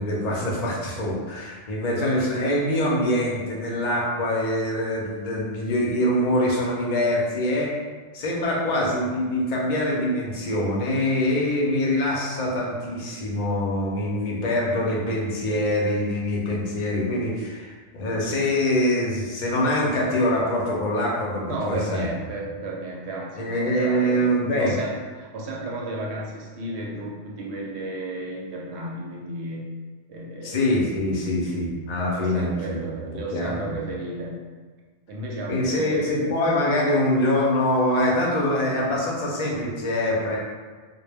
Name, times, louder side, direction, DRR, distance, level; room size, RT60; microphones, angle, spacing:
voice 1, 0.0-7.8 8.1-22.1 23.4-24.7 30.4-33.0 33.3-33.8 35.5-40.4, left 1 dB, 50° left, -3 dB, 0.5 m, -24 dB
voice 2, 21.5-29.7 30.1-30.7 32.2-34.4 35.1-36.3, right 2 dB, 75° right, -3 dB, 0.8 m, -33 dB
2.1 x 2.0 x 3.3 m, 1.4 s
omnidirectional pair, 1.2 m